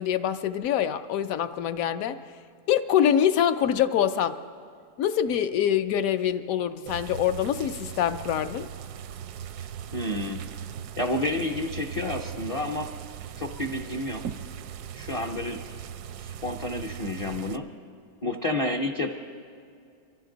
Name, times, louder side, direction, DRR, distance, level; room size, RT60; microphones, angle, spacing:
voice 1, 0.0-2.2 2.7-4.4 5.0-8.7, left 9 dB, 70° left, 11 dB, 0.9 m, -25 dB
sound 1, 6.9-17.6, right 9 dB, 85° right, 1.1 m, -39 dB
voice 2, 9.9-10.4 11.0-12.9 13.4-14.2 14.9-15.6 16.2-17.6 18.2-19.1, left 2 dB, 45° left, 4 dB, 0.4 m, -30 dB
24.0 x 14.5 x 3.9 m, 2.3 s
omnidirectional pair, 1.7 m